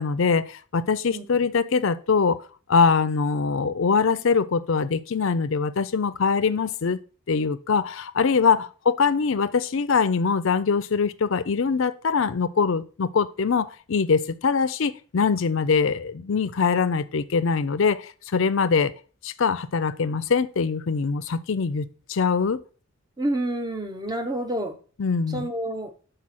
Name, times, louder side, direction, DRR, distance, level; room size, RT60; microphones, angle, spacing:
voice 1, 0.0-2.4 2.7-7.0 7.3-18.9 19.2-22.6 25.0-25.5, left 5 dB, 60° left, 0.5 m, -23 dB
voice 2, 23.2-24.8 25.3-25.9, right 1 dB, 20° right, 0.8 m, -28 dB
6.2 x 5.0 x 4.1 m
head